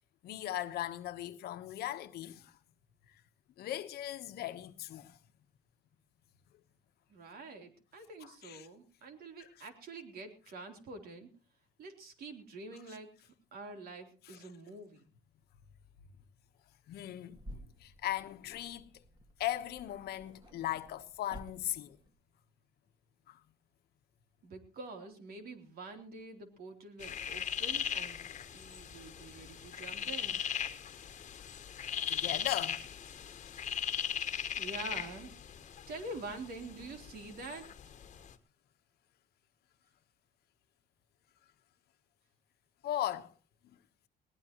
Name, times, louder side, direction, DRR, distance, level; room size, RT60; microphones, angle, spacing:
voice 1, 0.2-2.6 3.1-3.2 3.6-5.2 8.2-8.7 14.2-14.5 16.9-19.0 19.4-22.0 23.3-23.4 31.1-31.5 32.1-32.8 42.8-43.3 43.6-43.8, left 13 dB, 70° left, 1.2 m, -39 dB
voice 2, 7.1-11.3 11.8-15.1 24.4-30.4 34.6-35.3 35.9-37.6, right 3 dB, 65° right, 3.5 m, -46 dB
sound 1, 17.3-22.2, equal, 25° right, 2.6 m, -53 dB
sound 2, 27.0-38.3, left 8 dB, 45° left, 1.4 m, -39 dB
20.5 x 18.5 x 3.1 m
cardioid pair, 110°, 17 cm